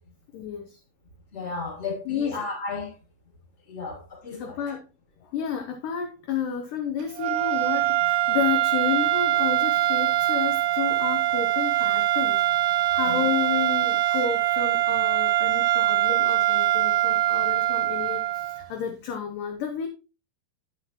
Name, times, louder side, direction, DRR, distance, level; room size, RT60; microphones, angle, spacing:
voice 1, 0.3-0.8 2.1-2.3 4.4-4.8 5.2-19.9, left 7 dB, 75° left, 2.1 m, -31 dB
voice 2, 1.3-2.9 3.7-4.6 13.0-13.3, left 4 dB, 20° left, 2.5 m, -34 dB
sound 1, 7.2-18.7, right 14 dB, 80° right, 2.3 m, -23 dB
9.2 x 8.2 x 2.9 m
omnidirectional pair, 4.5 m